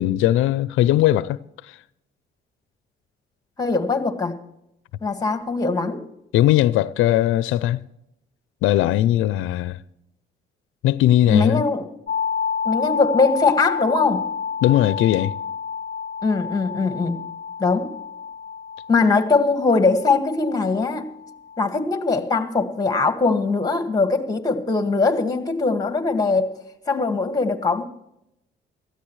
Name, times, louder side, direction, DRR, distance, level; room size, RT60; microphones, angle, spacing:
voice 1, 0.0-1.4 1.6-1.8 6.3-7.8 8.6-9.8 10.8-11.6 14.6-15.3, left 13 dB, 90° left, 0.4 m, -19 dB
voice 2, 3.6-4.4 5.0-6.0 11.3-11.9 12.6-14.3 16.2-17.2 17.6-17.9 18.9-21.1 21.6-26.6 26.9-27.8, left 4 dB, 20° left, 1.9 m, -21 dB
sound 1, 12.1-21.8, left 6 dB, 50° left, 0.6 m, -30 dB
17.5 x 14.0 x 3.2 m
cardioid pair, 90°, 20 cm